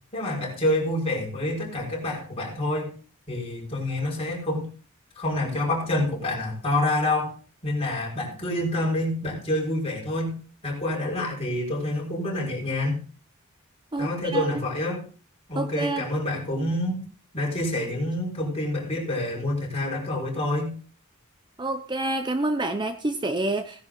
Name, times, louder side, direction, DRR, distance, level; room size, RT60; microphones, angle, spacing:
voice 1, 0.1-2.9 3.3-4.7 5.2-7.3 7.6-10.4 10.6-13.0 14.0-15.0 15.5-17.0 17.3-20.7, left 1 dB, 30° left, -2 dB, 5.8 m, -27 dB
voice 2, 13.9-14.6 15.5-16.0 21.6-23.9, right 2 dB, 20° right, 8 dB, 0.8 m, -28 dB
18.0 x 10.5 x 4.0 m, 0.40 s
head